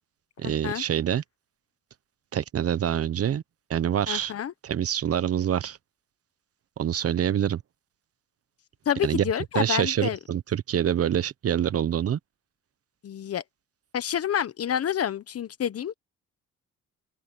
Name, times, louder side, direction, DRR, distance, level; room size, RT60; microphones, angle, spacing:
voice 1, 0.4-1.2 2.3-3.4 3.7-4.3 4.6-5.8 6.8-7.6 9.0-9.3 9.5-12.2, right 10 dB, 50° right, 0.9 m, -26 dB
voice 2, 4.1-4.5 8.8-10.2 13.0-13.4 13.9-15.9, left 9 dB, 50° left, 1.2 m, -28 dB
open air
cardioid pair, 90°, 30 cm